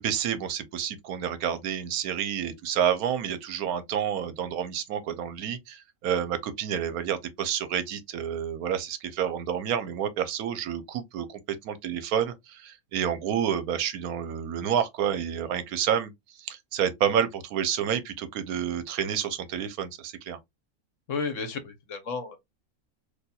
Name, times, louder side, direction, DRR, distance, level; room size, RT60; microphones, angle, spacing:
voice 1, 0.0-16.1 16.4-20.4, right 8 dB, 75° right, 1.1 m, -29 dB
voice 2, 21.1-22.4, left 5 dB, 60° left, 1.1 m, -32 dB
4.1 x 2.7 x 2.3 m
omnidirectional pair, 1.6 m